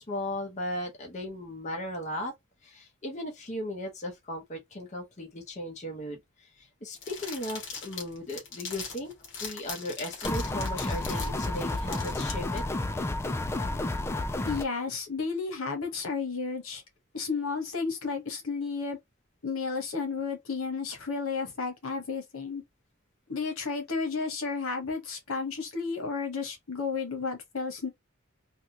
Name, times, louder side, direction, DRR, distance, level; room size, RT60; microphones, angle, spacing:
voice 1, 0.0-2.3 2.6-9.1 9.4-12.6, left 1 dB, 35° left, 0.9 m, -37 dB
sound 1, 7.0-12.6, left 5 dB, 60° left, 1.4 m, -40 dB
sound 2, 10.2-14.6, left 2 dB, 15° left, 0.3 m, -31 dB
voice 2, 14.4-16.8 17.1-19.0 19.4-22.6 23.3-27.9, left 4 dB, 90° left, 1.1 m, -32 dB
3.5 x 2.3 x 2.7 m
head